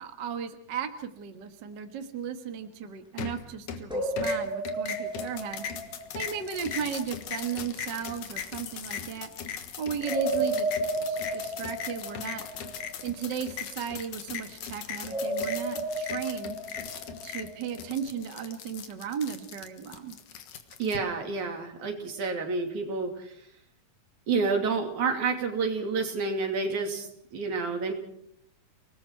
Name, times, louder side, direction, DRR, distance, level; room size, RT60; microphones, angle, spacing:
voice 1, 0.0-5.6 6.1-9.3 9.8-10.7 11.0-12.4 13.0-16.6 17.2-20.2, right 7 dB, 45° right, 6 dB, 1.7 m, -35 dB
sound 1, 3.2-3.9 4.2-21.0, left 8 dB, 75° left, 2.9 m, -39 dB
sound 2, 3.9-6.9 10.0-13.3 15.0-17.8, right 1 dB, ahead, 6.4 m, -33 dB
voice 2, 20.8-23.1 24.3-27.1 27.3-27.9, right 4 dB, 70° right, 3 dB, 4.2 m, -29 dB
30.0 x 19.5 x 4.6 m, 0.69 s
omnidirectional pair, 3.6 m